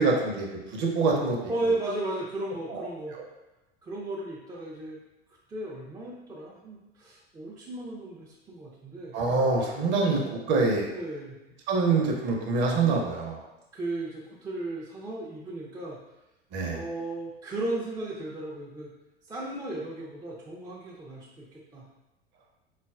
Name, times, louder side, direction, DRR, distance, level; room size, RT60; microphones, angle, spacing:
voice 1, 0.0-1.4 2.7-2.8 3.1-3.2 9.1-10.2 10.5-10.9 11.7-13.4 16.5-16.8, right 3 dB, 40° right, 0 dB, 0.7 m, -25 dB
voice 2, 1.5-3.2 3.8-5.0 5.5-9.2 10.9-11.4 13.7-16.0 16.7-18.9 19.2-21.9, right 2 dB, 15° right, -5 dB, 0.4 m, -35 dB
3.8 x 2.4 x 2.3 m, 0.99 s
figure-of-eight pair, 80°, 30 cm